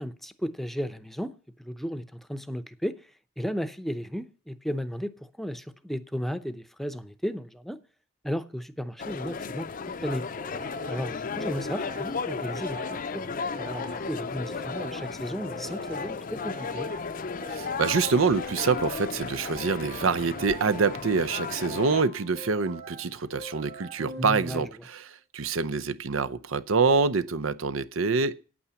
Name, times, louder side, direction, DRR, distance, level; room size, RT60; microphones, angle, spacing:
voice 1, 0.0-1.3 1.6-3.0 3.4-7.8 8.2-9.7 10.0-10.2 10.9-13.2 13.6-16.9 24.2-24.6, equal, ahead, 0.6 m, -34 dB
sound 1, 9.0-22.0, left 5 dB, 45° left, 0.5 m, -34 dB
sound 2, 10.4-24.9, right 3 dB, 35° right, 1.1 m, -45 dB
voice 2, 17.5-28.3, right 4 dB, 90° right, 0.7 m, -26 dB
9.3 x 8.6 x 6.9 m
head